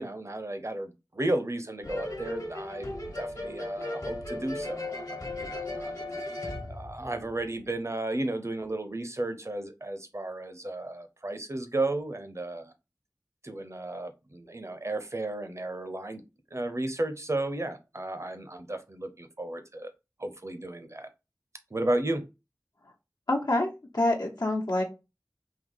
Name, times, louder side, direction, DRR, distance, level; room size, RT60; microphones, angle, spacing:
voice 1, 0.0-2.9 3.2-6.0 6.7-12.7 13.4-16.2 16.5-19.9 20.2-21.1 21.7-22.2, right 2 dB, 45° right, 0.7 m, -33 dB
sound 1, 1.8-7.6, left 2 dB, 60° left, 1.3 m, -36 dB
voice 2, 23.3-24.8, left 1 dB, 75° left, 1.0 m, -27 dB
3.7 x 2.8 x 3.8 m
wide cardioid pair, 45°, 7 cm